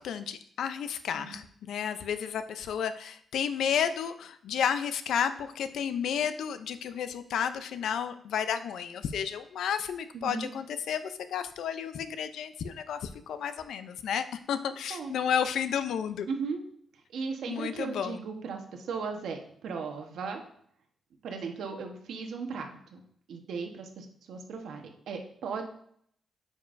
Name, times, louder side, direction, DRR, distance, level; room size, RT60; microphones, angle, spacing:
voice 1, 0.0-16.3 17.5-18.2, left 8 dB, 90° left, 10 dB, 0.5 m, -32 dB
voice 2, 10.1-10.5 14.9-15.1 16.3-16.6 16.9-20.4 21.2-23.0 23.3-25.6, right 5 dB, 85° right, 4 dB, 1.1 m, -37 dB
9.2 x 5.3 x 2.6 m, 0.65 s
wide cardioid pair, 175°, 0 cm